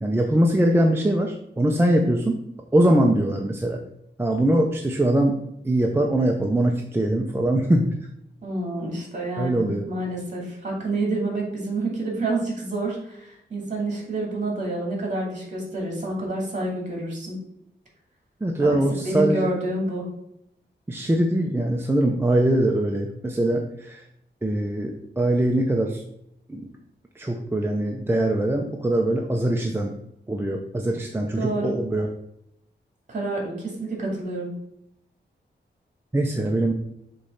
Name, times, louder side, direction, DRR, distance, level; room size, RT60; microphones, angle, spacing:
voice 1, 0.0-2.4 2.7-3.8 4.2-5.4 5.6-7.9 9.4-9.9 18.4-19.5 20.9-24.0 24.4-26.0 26.5-26.6 27.2-29.9 30.3-32.1 36.1-36.7, right 1 dB, 10° right, 1 dB, 0.5 m, -22 dB
voice 2, 8.4-17.4 18.6-20.1 31.4-31.8 33.1-34.5, right 2 dB, 40° right, -1 dB, 2.5 m, -28 dB
6.7 x 3.2 x 5.5 m, 0.78 s
wide cardioid pair, 145°, 19 cm